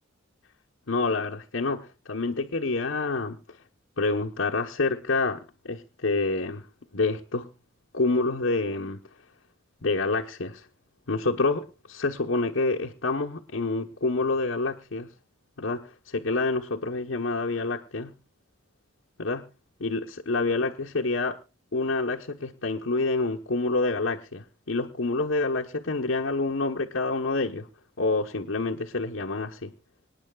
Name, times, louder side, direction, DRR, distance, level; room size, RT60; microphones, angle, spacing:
voice 1, 0.9-3.4 4.0-6.6 6.9-7.5 7.9-9.0 9.8-10.7 11.1-15.1 15.6-18.1 19.2-19.4 19.8-21.4 21.7-27.7 28.0-29.7, left 3 dB, 75° left, -1 dB, 1.2 m, -27 dB
26.0 x 9.9 x 2.4 m, 0.30 s
head